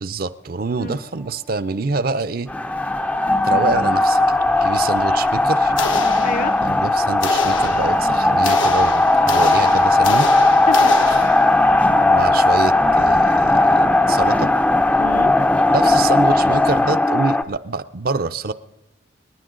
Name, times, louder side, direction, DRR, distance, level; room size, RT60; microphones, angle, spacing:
voice 1, 0.0-2.5 3.4-5.7 6.6-10.3 11.9-14.5 15.7-18.5, right 3 dB, 50° right, 14 dB, 0.5 m, -26 dB
sound 1, 2.5-17.4, left 2 dB, 5° left, 0.4 m, -17 dB
sound 2, 5.8-6.8 7.2-11.7, left 4 dB, 90° left, 1.3 m, -28 dB
voice 2, 6.2-6.7 10.1-10.3 10.7-10.9 11.6-11.9 15.0-15.3 15.8-16.0, left 3 dB, 45° left, 13 dB, 0.7 m, -29 dB
27.5 x 10.0 x 3.8 m, 0.98 s
head